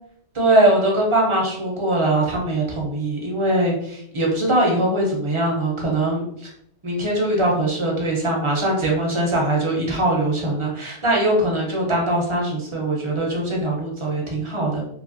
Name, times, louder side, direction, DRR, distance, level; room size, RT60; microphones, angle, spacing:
voice 1, 0.3-6.5 6.8-14.8, right 1 dB, 35° right, -1 dB, 0.5 m, -21 dB
2.9 x 2.4 x 2.5 m, 0.70 s
omnidirectional pair, 1.3 m